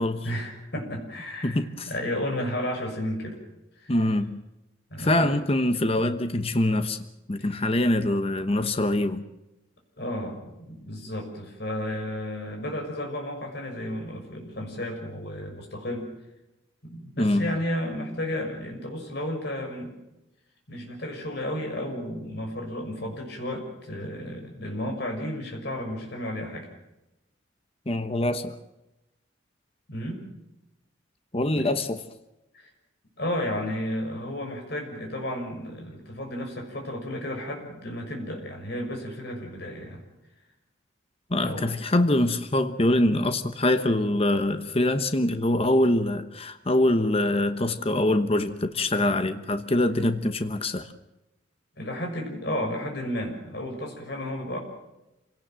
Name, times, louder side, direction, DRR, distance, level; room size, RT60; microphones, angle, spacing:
voice 1, 0.2-3.4 3.8-4.0 4.9-5.3 5.9-6.1 7.4-7.6 10.0-16.1 16.8-19.9 20.7-26.7 29.9-30.2 31.5-31.7 32.5-32.7 33.2-40.0 41.4-41.7 51.8-54.6, left 1 dB, 55° left, 6.4 m, -33 dB
voice 2, 1.4-1.9 3.9-4.4 5.0-7.0 7.3-9.2 17.2-17.5 27.9-28.5 31.3-32.0 41.3-50.9, left 1 dB, 30° left, 1.1 m, -24 dB
27.5 x 18.0 x 7.6 m
head